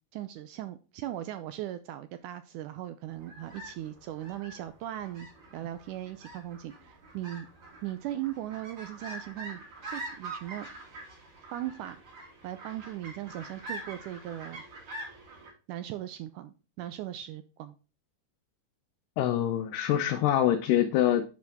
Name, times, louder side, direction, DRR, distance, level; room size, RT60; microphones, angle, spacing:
voice 1, 0.1-5.3 5.5-7.5 7.8-10.7 11.5-12.0 12.4-14.6 15.7-17.8, right 13 dB, 80° right, 2.0 m, -38 dB
sound 1, 3.1-15.5, right 2 dB, 55° right, 5.2 m, -45 dB
voice 2, 19.2-21.2, left 11 dB, 80° left, 2.3 m, -25 dB
10.0 x 5.0 x 3.5 m
omnidirectional pair, 3.9 m